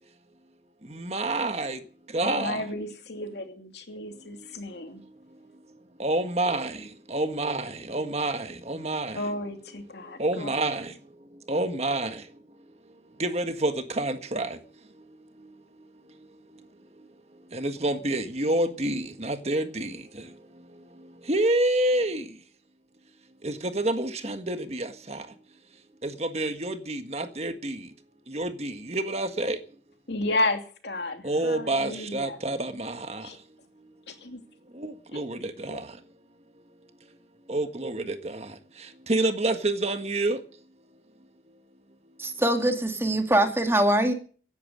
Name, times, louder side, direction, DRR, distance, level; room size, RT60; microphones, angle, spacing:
voice 1, 0.9-1.8 2.1-2.6 6.0-9.2 10.2-10.9 11.5-12.2 13.2-14.6 17.5-20.0 21.3-22.2 23.4-25.2 26.0-27.8 28.3-29.6 31.2-33.3 34.8-35.9 37.5-38.5 39.1-40.4, right 2 dB, 35° right, 1.6 m, -28 dB
voice 2, 2.2-5.0 9.1-10.5 30.1-32.4 33.2-33.4 34.2-34.4 35.7-35.8, left 2 dB, 75° left, 2.8 m, -32 dB
voice 3, 42.2-44.1, right 1 dB, 15° right, 2.2 m, -23 dB
16.0 x 11.0 x 7.8 m
head